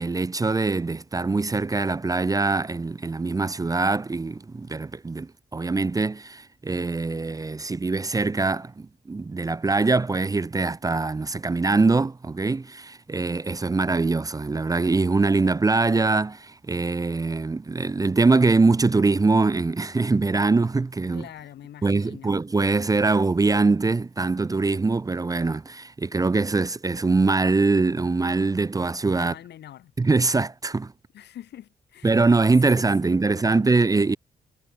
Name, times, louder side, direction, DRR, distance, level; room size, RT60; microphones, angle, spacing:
voice 1, 0.0-21.3 21.8-29.3 30.0-30.9 32.0-34.2, right 3 dB, 20° right, 0.7 m, -23 dB
voice 2, 21.1-22.4 29.2-29.9 31.1-32.4 32.6-33.7, left 11 dB, 80° left, 3.6 m, -45 dB
cardioid pair, 95°, 17 cm